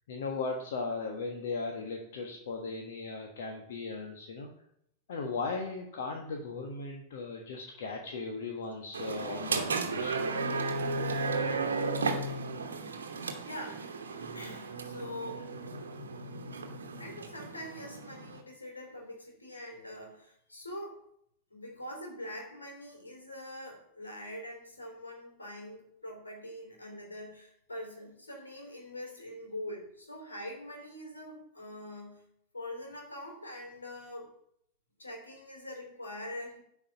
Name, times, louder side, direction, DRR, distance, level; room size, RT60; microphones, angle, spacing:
voice 1, 0.1-4.5 5.1-10.3, left 4 dB, 60° left, 2 dB, 1.3 m, -37 dB
sound 1, 8.9-18.4, right 3 dB, 70° right, 1.1 m, -34 dB
voice 2, 11.0-11.8 13.0-13.9 14.3-15.5 17.0-21.0 21.5-32.3 32.5-34.3 35.0-36.6, left 1 dB, 80° left, 1 dB, 3.3 m, -44 dB
10.5 x 4.8 x 6.9 m, 0.73 s
figure-of-eight pair, 90°, 0 cm